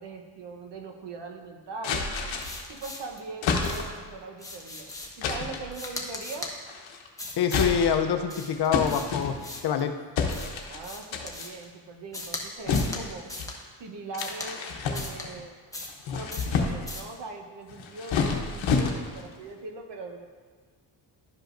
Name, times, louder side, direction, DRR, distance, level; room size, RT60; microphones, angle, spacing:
voice 1, 0.0-2.1 2.7-6.5 10.7-13.2 13.8-15.6 16.1-20.3, right 3 dB, 65° right, 3 dB, 1.0 m, -41 dB
sound 1, 1.8-2.7 3.4-4.1 5.2-5.7 6.7-7.1 7.4-8.2 8.7-9.7 10.2-10.8 11.1-11.5 12.7-13.5 14.1-15.4 15.9-17.0 17.7-19.3, left 5 dB, 80° left, 0.9 m, -29 dB
sound 2, 2.4-3.2 3.6-4.0 4.4-5.3 5.7-6.5 7.2-7.7 8.3-9.8 10.3-11.6 12.1-12.4 12.7-13.0 13.3-13.6 14.2-14.5 14.9-15.3 15.7-16.0 16.3-16.5 16.9-17.1, left 2 dB, 5° left, 1.1 m, -39 dB
voice 2, 7.4-9.3 9.6-9.9, left 7 dB, 60° left, 8 dB, 0.7 m, -25 dB
11.5 x 5.1 x 2.6 m, 1.6 s
cardioid pair, 90°, 45 cm